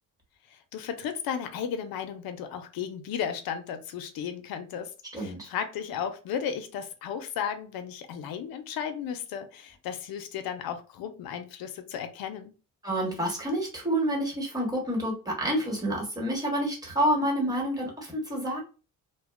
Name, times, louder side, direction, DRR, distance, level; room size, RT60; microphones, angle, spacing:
voice 1, 0.5-4.9 5.2-12.5, left 8 dB, 75° left, 8 dB, 0.6 m, -34 dB
voice 2, 5.1-5.5 12.8-18.6, equal, 10° right, -1 dB, 1.2 m, -28 dB
2.6 x 2.1 x 2.4 m, 0.34 s
cardioid pair, 110°, 35 cm